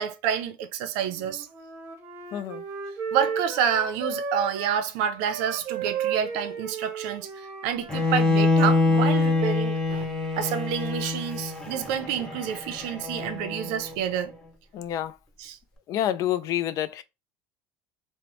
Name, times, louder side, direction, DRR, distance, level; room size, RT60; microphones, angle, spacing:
voice 1, 0.0-1.5 3.1-10.1 10.4-14.3 15.4-15.6, right 8 dB, 75° right, 0.5 m, -28 dB
Wind instrument woodwind instrument, 1.0-4.9 5.2-9.5, right 6 dB, 35° right, 0.8 m, -35 dB
voice 2, 2.3-2.6 14.7-15.2 15.9-17.0, left 11 dB, 50° left, 0.3 m, -28 dB
Bowed string instrument, 7.9-13.9, left 3 dB, 10° left, 0.6 m, -25 dB
2.9 x 2.1 x 3.0 m
supercardioid pair, 125°, 7 cm